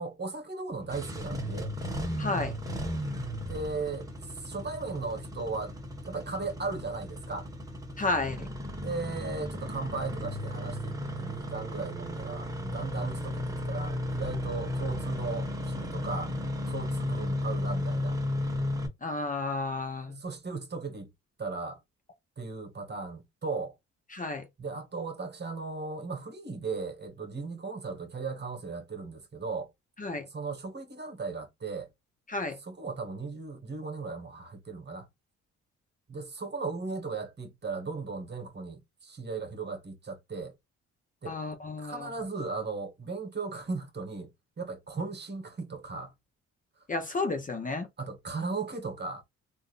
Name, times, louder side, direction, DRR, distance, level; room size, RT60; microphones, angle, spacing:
voice 1, 0.0-1.7 3.4-5.7 6.0-7.5 8.8-16.3 16.7-18.2 20.1-21.1 21.4-21.8 22.4-23.7 24.6-29.7 30.3-31.9 32.6-35.1 36.1-40.5 41.2-41.4 41.8-44.3 44.6-46.1 48.0-49.2, right 4 dB, 35° right, 1.4 m, -37 dB
Engine starting, 0.7-18.9, left 1 dB, 10° right, 1.4 m, -34 dB
voice 2, 2.2-2.6 8.0-8.5 19.0-20.2 24.1-24.5 30.0-30.3 32.3-32.6 41.3-42.1 46.9-47.9, left 3 dB, 25° left, 0.8 m, -32 dB
3.4 x 2.6 x 2.5 m
cardioid pair, 90°, 30 cm